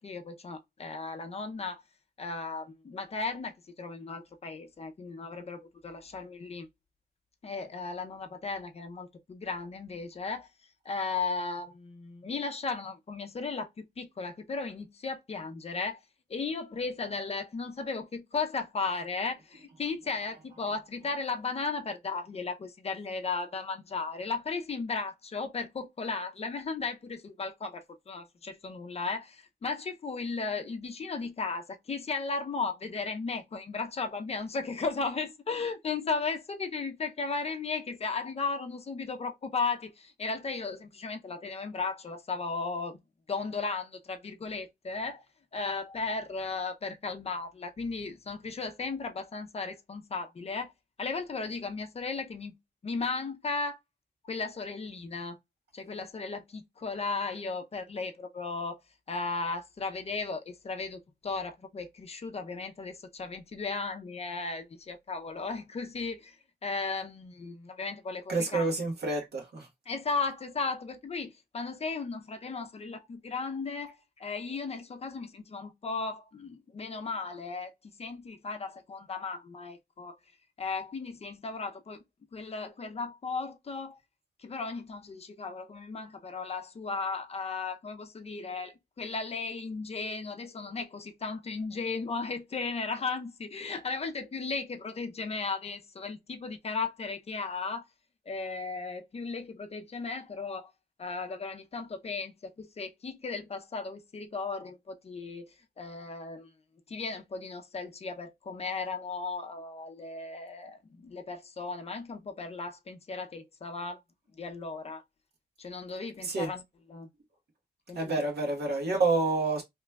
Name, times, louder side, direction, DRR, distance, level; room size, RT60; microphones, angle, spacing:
voice 1, 0.0-1.8 2.2-6.7 7.4-10.5 10.9-16.0 16.3-43.0 43.3-45.2 45.5-50.7 51.0-52.5 52.8-53.8 54.3-55.4 55.7-58.8 59.1-66.4 66.6-68.7 69.9-77.7 78.0-80.2 80.6-82.0 82.3-84.0 84.4-97.9 98.3-100.7 101.0-106.5 106.9-114.0 114.4-115.0 115.6-116.6 116.9-117.1 117.9-118.0, left 4 dB, 40° left, 0.5 m, -35 dB
voice 2, 68.3-69.7 116.2-116.5 117.9-119.6, right 3 dB, 80° right, 1.1 m, -28 dB
2.9 x 2.2 x 3.3 m
wide cardioid pair, 130°, 17 cm